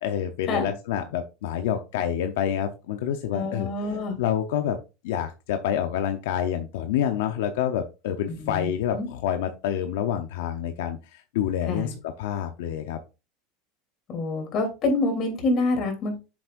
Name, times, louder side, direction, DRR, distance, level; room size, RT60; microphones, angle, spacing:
voice 1, 0.0-3.7 4.2-4.8 5.0-13.0, left 9 dB, 80° left, 7 dB, 0.8 m, -28 dB
voice 2, 3.3-4.2 8.3-9.1 11.7-12.0 14.1-16.2, left 2 dB, 40° left, 4 dB, 3.2 m, -27 dB
7.3 x 7.2 x 2.6 m, 0.28 s
supercardioid pair, 140°, 0 cm